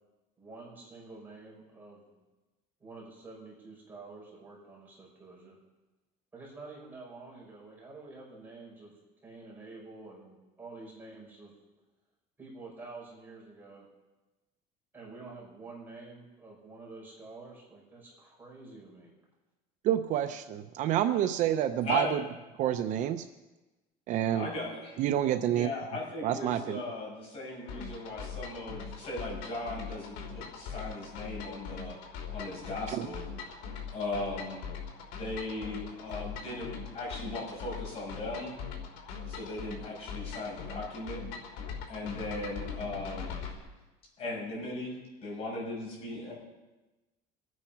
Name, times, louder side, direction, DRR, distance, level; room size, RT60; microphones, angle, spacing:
voice 1, 0.4-2.2 2.8-5.6 6.3-11.5 12.4-13.9 14.9-19.1, right 3 dB, 10° right, -4 dB, 5.6 m, -48 dB
voice 2, 19.8-22.2 22.6-23.2 24.1-24.5 25.0-25.7 26.2-26.8 32.9-33.1, right 11 dB, 45° right, 8 dB, 0.7 m, -28 dB
voice 3, 24.3-25.0 25.5-31.9 32.3-33.2 33.9-34.6 35.2-38.6 39.3-41.2 41.9-43.6 44.2-44.9 45.2-46.3, left 2 dB, 35° left, -3 dB, 7.1 m, -38 dB
sound 1, 27.7-43.5, left 6 dB, 80° left, 3.5 m, -41 dB
24.5 x 9.5 x 5.8 m, 1.1 s
cardioid pair, 175°, 17 cm